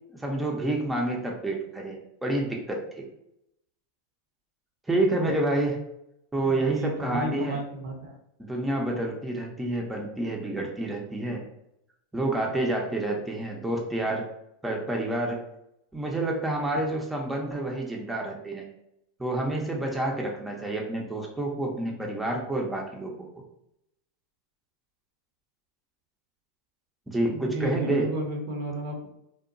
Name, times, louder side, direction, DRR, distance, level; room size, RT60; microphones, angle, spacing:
voice 1, 0.1-3.1 4.9-5.8 6.3-7.6 8.4-11.4 12.1-14.3 14.6-15.4 15.9-18.7 19.2-23.3 27.1-28.1, right 2 dB, 10° right, -1 dB, 0.5 m, -28 dB
voice 2, 6.4-8.1 27.3-29.1, right 1 dB, 75° right, 1 dB, 0.7 m, -33 dB
2.8 x 2.1 x 2.5 m, 0.80 s
hypercardioid pair, 105°, 0 cm